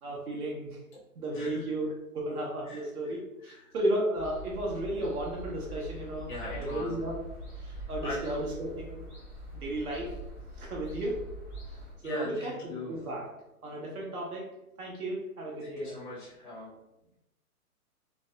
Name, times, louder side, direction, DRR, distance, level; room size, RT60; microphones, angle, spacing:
voice 1, 0.0-0.8 1.2-7.2 7.5-9.0 9.5-10.1 10.6-11.2 12.0-13.3 13.6-14.4 14.8-16.0, right 1 dB, 75° right, -3 dB, 0.9 m, -34 dB
voice 2, 1.3-1.7 2.7-3.1 3.4-3.7 6.3-6.9 7.7-8.5 12.0-12.9 15.6-16.7, left 2 dB, 35° left, -6 dB, 0.5 m, -41 dB
sound 1, 4.2-11.9, right 1 dB, 15° right, 0.6 m, -43 dB
2.6 x 2.1 x 2.5 m, 0.90 s
hypercardioid pair, 170°, 46 cm